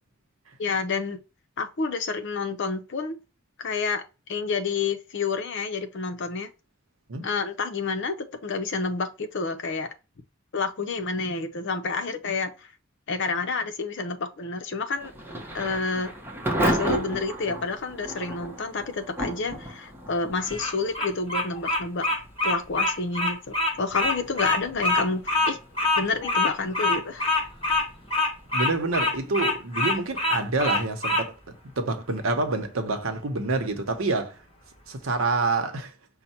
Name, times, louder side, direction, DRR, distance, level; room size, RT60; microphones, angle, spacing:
voice 1, 0.6-1.2 1.6-3.2 3.6-4.0 4.3-6.5 7.2-9.9 10.5-12.5 13.1-15.1 15.5-16.1 16.6-22.1 22.4-25.6 26.0-27.5, left 4 dB, 60° left, 0.7 m, -29 dB
Thunder / Rain, 15.0-31.7, right 1 dB, 10° right, 0.8 m, -35 dB
Bird vocalization bird call bird song, 20.4-31.2, left 2 dB, 25° left, 1.5 m, -25 dB
voice 2, 28.5-31.4 31.8-34.4 34.9-35.9, right 3 dB, 75° right, 0.9 m, -27 dB
5.5 x 2.2 x 4.3 m
head